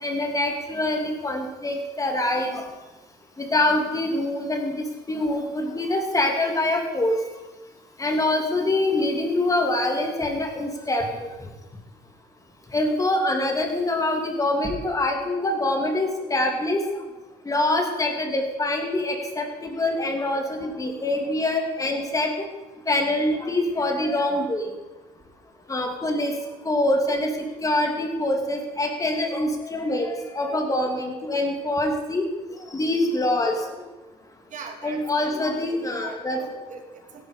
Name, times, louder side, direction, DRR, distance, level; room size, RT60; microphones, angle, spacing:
voice 1, 0.0-2.6 3.4-7.2 8.0-11.3 12.7-16.8 17.5-22.3 22.9-24.7 25.7-26.3 26.6-27.3 27.6-32.2 32.7-33.7 34.8-36.4, left 1 dB, 20° left, 3 dB, 2.7 m, -25 dB
voice 2, 34.5-35.4 35.9-37.3, right 5 dB, 50° right, 5 dB, 2.5 m, -41 dB
16.0 x 11.5 x 5.1 m, 1.1 s
cardioid pair, 110°, 17 cm